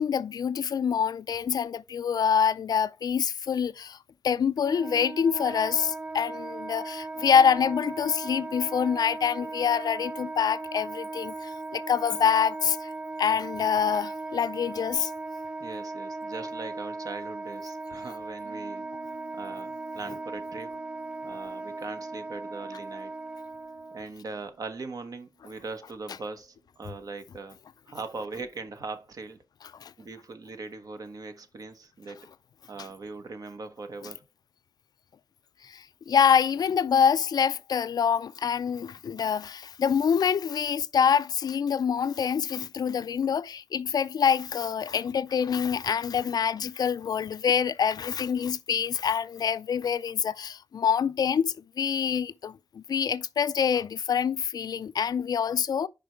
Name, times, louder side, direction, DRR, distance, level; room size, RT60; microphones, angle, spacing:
voice 1, 0.0-4.0 4.2-12.9 13.2-15.1 29.8-29.9 35.6-55.9, left 7 dB, 75° left, 0.4 m, -26 dB
Wind instrument woodwind instrument, 4.6-24.1, right 3 dB, 15° right, 0.4 m, -37 dB
voice 2, 15.6-20.7 21.2-23.1 23.9-27.6 27.9-29.4 30.0-32.3 32.7-34.2, right 3 dB, 60° right, 1.2 m, -40 dB
sound 1, 18.4-26.7 27.1-27.2, right 6 dB, 85° right, 2.7 m, -57 dB
5.1 x 4.9 x 4.6 m
wide cardioid pair, 85°, 7 cm